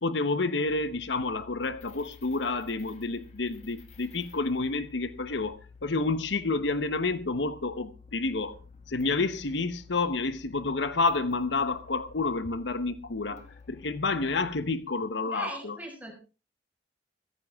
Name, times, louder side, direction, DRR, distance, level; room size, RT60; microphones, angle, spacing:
voice 1, 0.0-8.6 8.9-13.4 13.7-15.7, left 3 dB, 75° left, 1.0 m, -29 dB
sound 1, 0.6-14.6, left 5 dB, 40° left, 2.3 m, -52 dB
voice 2, 15.3-16.1, right 2 dB, 10° right, 5.6 m, -39 dB
16.0 x 14.5 x 3.6 m
head